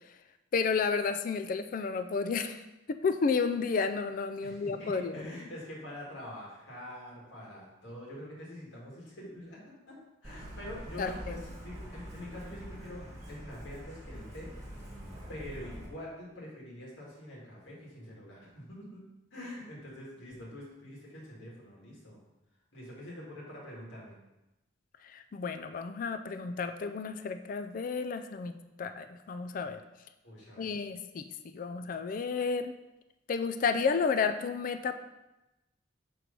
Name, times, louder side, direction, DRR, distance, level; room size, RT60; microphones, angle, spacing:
voice 1, 0.5-2.6 2.9-5.2 11.0-11.4 25.0-29.8 30.6-32.7 33.3-34.9, left 5 dB, 45° left, 9 dB, 0.3 m, -32 dB
voice 2, 4.4-9.6 9.9-10.0 10.2-14.5 15.3-19.0 19.3-22.2 22.7-24.2 30.2-30.8, left 1 dB, 70° left, -4 dB, 2.0 m, -45 dB
Truck, 10.2-15.9, equal, 20° right, 1.5 m, -44 dB
6.0 x 3.1 x 5.2 m, 0.98 s
head